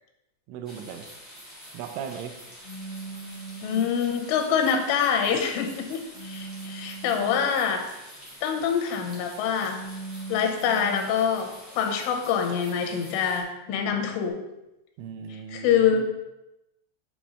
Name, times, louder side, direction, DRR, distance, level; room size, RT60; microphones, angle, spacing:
voice 1, 0.5-1.1 1.7-2.4 15.0-16.0, right 7 dB, 85° right, 6 dB, 3.0 m, -37 dB
sound 1, 0.6-13.4, equal, 10° right, 0.7 m, -47 dB
sound 2, 2.6-4.0 6.1-7.5 9.6-11.2 13.6-14.3, right 3 dB, 65° right, 1.4 m, -40 dB
voice 2, 3.6-7.8 8.4-9.8 10.3-14.4 15.5-16.0, left 7 dB, 85° left, 4 dB, 3.3 m, -25 dB
8.5 x 3.1 x 5.4 m, 0.95 s
omnidirectional pair, 5.6 m